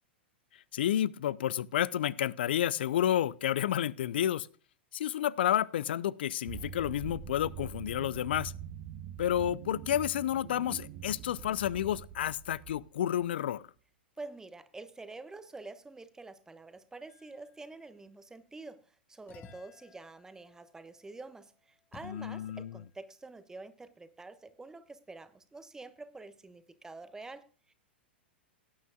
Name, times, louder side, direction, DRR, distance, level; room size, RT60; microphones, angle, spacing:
voice 1, 0.7-4.5 4.9-8.5 9.2-13.6 22.0-22.8, left 11 dB, 65° left, 0.5 m, -30 dB
sound 1, 6.5-13.3, right 9 dB, 40° right, 1.1 m, -44 dB
voice 2, 14.2-27.7, right 3 dB, 10° right, 1.1 m, -47 dB
sound 2, 17.1-17.8 19.3-22.9, left 6 dB, 30° left, 1.7 m, -57 dB
18.0 x 9.4 x 2.4 m
hypercardioid pair, 105°, 6 cm